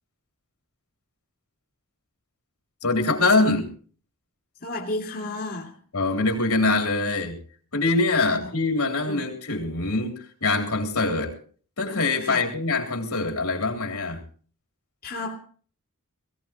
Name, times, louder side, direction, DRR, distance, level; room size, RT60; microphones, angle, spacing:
voice 1, 2.8-3.7 5.9-7.4 7.7-11.3 11.8-14.2, left 3 dB, 80° left, 1 dB, 3.6 m, -24 dB
voice 2, 4.6-5.7 8.4-8.5 9.1-9.3 12.2-12.4 15.0-15.4, left 2 dB, 45° left, -1 dB, 2.4 m, -32 dB
21.5 x 17.0 x 3.0 m, 0.42 s
head